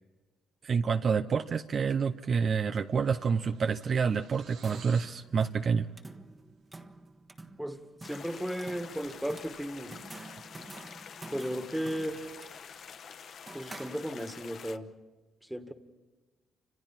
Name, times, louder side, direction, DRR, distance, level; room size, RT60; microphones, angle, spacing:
voice 1, 0.6-5.9, right 6 dB, 50° right, 8 dB, 0.7 m, -28 dB
sound 1, 2.5-5.2, right 7 dB, 90° right, 2.7 m, -54 dB
sound 2, 4.3-14.5, right 2 dB, 20° right, 1.4 m, -50 dB
voice 2, 7.6-10.0 11.3-12.3 13.5-14.9 15.5-15.7, equal, 5° right, 8 dB, 1.9 m, -35 dB
sound 3, 8.0-14.8, left 7 dB, 60° left, 1.0 m, -47 dB
29.5 x 26.5 x 4.4 m, 1.3 s
cardioid pair, 90°, 0 cm